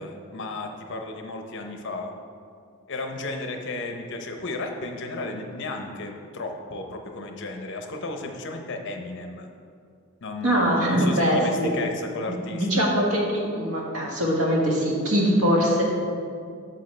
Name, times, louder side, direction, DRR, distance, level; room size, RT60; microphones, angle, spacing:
voice 1, 0.0-2.1 2.9-9.5 10.2-12.9, left 2 dB, 55° left, 4 dB, 0.7 m, -34 dB
voice 2, 10.4-11.7 12.5-15.8, equal, 80° right, -2 dB, 1.5 m, -22 dB
8.1 x 6.7 x 3.3 m, 2.3 s
head